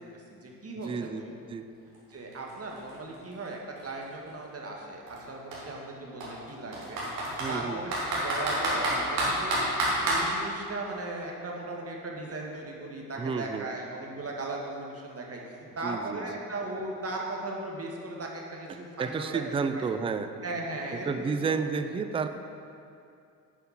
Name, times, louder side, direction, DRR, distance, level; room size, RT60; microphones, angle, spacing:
voice 1, 0.3-1.3 2.1-7.0 7.5-19.9 20.4-21.5, right 2 dB, 30° right, -1 dB, 1.9 m, -37 dB
voice 2, 0.8-1.2 1.5-1.7 7.4-7.8 13.2-13.7 15.8-16.4 18.7-20.3 20.9-22.3, right 5 dB, 15° right, 9 dB, 0.4 m, -31 dB
Computer keyboard, 1.9-2.0 2.3-4.3 5.1-5.2 5.5-5.6 6.2-7.5 7.9-10.2, right 1 dB, 75° right, 2.1 m, -28 dB
11.0 x 5.6 x 5.8 m, 2.5 s
figure-of-eight pair, 50°, 47 cm